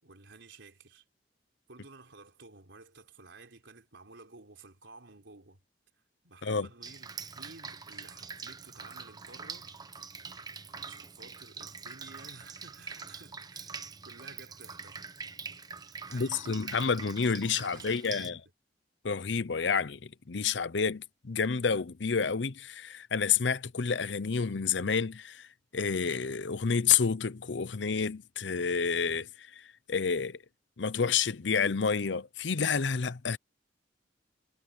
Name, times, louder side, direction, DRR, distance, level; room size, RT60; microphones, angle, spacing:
voice 1, 0.0-1.0 1.7-5.6 6.2-9.8 10.7-13.8 14.0-15.0 16.0-16.7 17.4-18.4, right 3 dB, 85° right, 3.7 m, -53 dB
Drip, 6.8-18.3, right 5 dB, 20° right, 0.9 m, -44 dB
voice 2, 16.1-18.4 19.0-25.5 25.7-30.4 30.8-33.4, left 6 dB, 75° left, 0.7 m, -29 dB
head